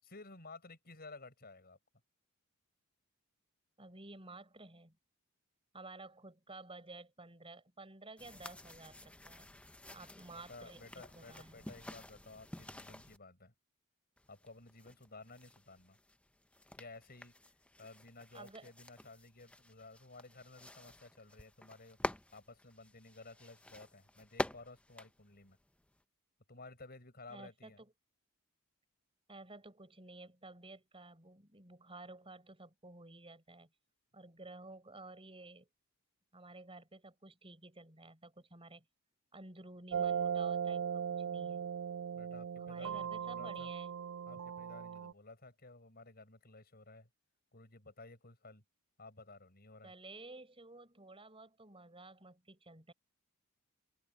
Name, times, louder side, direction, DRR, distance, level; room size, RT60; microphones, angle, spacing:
voice 1, 0.0-1.8 10.3-13.5 14.3-16.0 16.8-17.3 17.8-22.0 22.3-25.6 26.5-27.8 42.1-43.7 44.3-47.1 47.5-48.6 49.0-49.9, left 3 dB, 45° left, 7.1 m, -54 dB
voice 2, 3.8-5.0 5.7-9.5 9.9-11.7 18.3-18.7 27.3-27.9 29.3-33.7 34.1-35.7 36.3-38.8 39.3-41.7 42.5-43.9 49.8-52.9, right 2 dB, 25° right, 5.6 m, -53 dB
sound 1, 8.2-13.2 14.2-26.0, left 1 dB, 5° left, 0.6 m, -48 dB
sound 2, 39.9-45.1, right 7 dB, 65° right, 0.3 m, -38 dB
open air
head